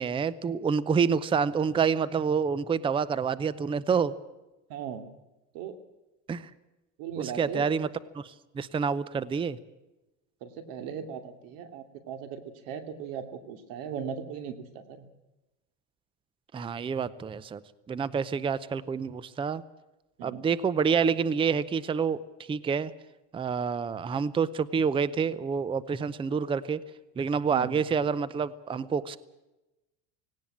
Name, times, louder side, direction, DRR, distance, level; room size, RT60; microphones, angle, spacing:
voice 1, 0.0-4.1 6.3-6.5 7.2-7.9 8.1-9.6 16.5-17.6 17.9-19.6 20.2-22.2 22.5-22.9 23.3-26.8 27.2-29.2, right 6 dB, 15° right, 18 dB, 0.6 m, -28 dB
voice 2, 4.7-5.1 5.5-5.8 7.0-7.7 10.4-15.1 20.2-20.4 27.5-27.9, right 7 dB, 65° right, 8 dB, 2.9 m, -38 dB
18.0 x 18.0 x 8.8 m, 1.0 s
supercardioid pair, 130°, 36 cm